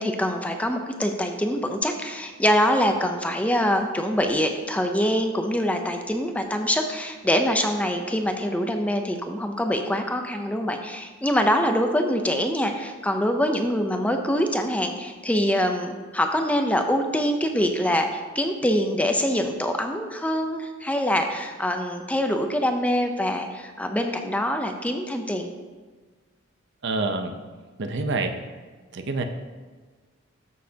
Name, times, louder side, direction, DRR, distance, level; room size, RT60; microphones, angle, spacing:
voice 1, 0.0-25.5, equal, 5° left, 5 dB, 0.5 m, -24 dB
voice 2, 26.8-27.4 27.8-28.3 28.9-29.2, right 3 dB, 55° right, 6 dB, 0.6 m, -26 dB
13.0 x 6.4 x 2.8 m, 1.4 s
head